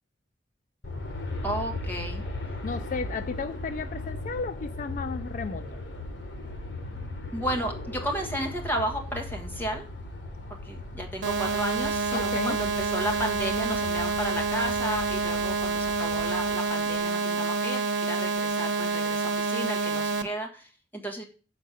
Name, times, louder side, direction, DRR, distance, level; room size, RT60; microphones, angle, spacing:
Aircraft, 0.8-17.0, left 2 dB, 80° left, 1.6 m, -38 dB
voice 1, 1.4-2.2 7.3-9.8 10.6-21.2, right 1 dB, 10° left, 1.5 m, -33 dB
voice 2, 2.6-5.6 12.1-12.6, left 4 dB, 45° left, 0.3 m, -34 dB
sound 1, 11.2-20.2, right 4 dB, 80° right, 1.0 m, -28 dB
7.5 x 5.0 x 6.3 m
head